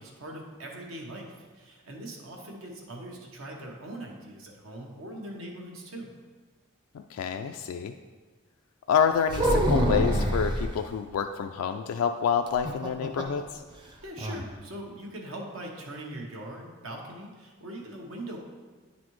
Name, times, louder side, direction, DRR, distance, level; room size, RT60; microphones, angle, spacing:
voice 1, 0.0-6.1 14.0-18.4, right 1 dB, 80° right, -1 dB, 1.1 m, -41 dB
voice 2, 7.1-7.9 8.9-13.6, left 7 dB, 85° left, 6 dB, 0.3 m, -27 dB
sound 1, 9.3-10.7 12.5-13.4 13.7-13.8 14.2-14.4, equal, 20° right, 0.5 m, -25 dB
9.5 x 4.1 x 3.1 m, 1.4 s
head